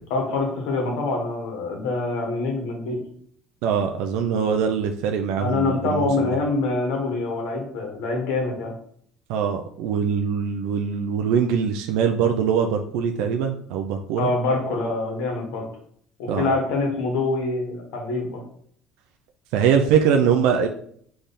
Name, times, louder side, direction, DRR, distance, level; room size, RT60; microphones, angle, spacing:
voice 1, 0.1-3.0 5.3-8.7 14.2-15.7 16.2-18.4, left 3 dB, 80° left, 1 dB, 1.5 m, -25 dB
voice 2, 3.6-6.3 9.3-14.3 16.3-16.5 19.5-20.7, right 7 dB, 75° right, 4 dB, 0.4 m, -22 dB
4.1 x 3.4 x 3.6 m, 0.63 s
cardioid pair, 165°, 0 cm